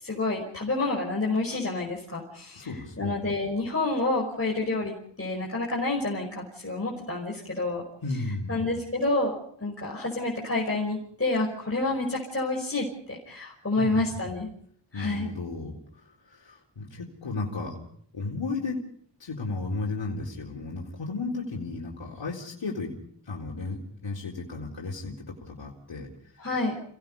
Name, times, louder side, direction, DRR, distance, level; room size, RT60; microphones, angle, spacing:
voice 1, 0.0-2.7 3.0-7.8 8.5-14.5 14.9-15.3 26.4-26.7, left 2 dB, 30° left, -3 dB, 5.7 m, -29 dB
voice 2, 2.5-3.2 8.0-8.7 13.8-14.2 14.9-17.8 18.1-18.8 19.2-22.9 23.2-26.1, left 3 dB, 80° left, -3 dB, 4.0 m, -34 dB
30.0 x 18.0 x 5.5 m, 0.64 s
wide cardioid pair, 65°, 44 cm